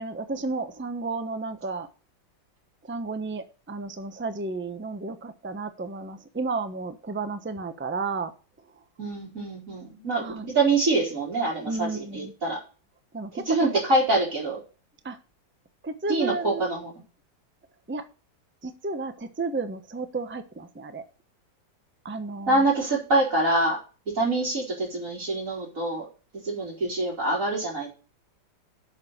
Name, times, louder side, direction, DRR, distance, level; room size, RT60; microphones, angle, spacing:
voice 1, 0.0-1.9 2.8-8.3 10.2-10.4 11.7-12.3 13.1-13.7 15.0-15.2 15.8-16.6 17.9-18.0 18.6-21.0 22.0-22.6, right 3 dB, 10° right, 9 dB, 0.6 m, -32 dB
voice 2, 9.0-12.6 13.3-14.6 16.1-16.9 22.5-23.8 24.1-26.1 26.4-27.9, right 2 dB, 40° right, -6 dB, 4.7 m, -25 dB
8.2 x 6.8 x 8.1 m, 0.35 s
omnidirectional pair, 2.1 m